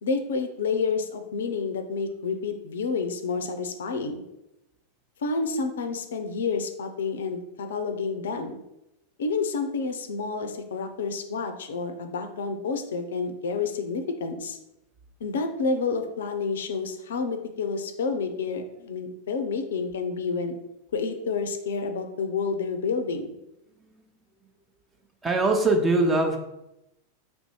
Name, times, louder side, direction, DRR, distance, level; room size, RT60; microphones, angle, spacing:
voice 1, 0.0-4.2 5.2-8.6 9.2-14.6 15.2-20.6 20.9-23.3, left 4 dB, 60° left, 6 dB, 0.4 m, -29 dB
voice 2, 11.8-12.3 25.2-26.4, right 2 dB, 15° right, 3 dB, 0.6 m, -23 dB
3.3 x 2.6 x 4.5 m, 0.89 s
figure-of-eight pair, 90°, 0 cm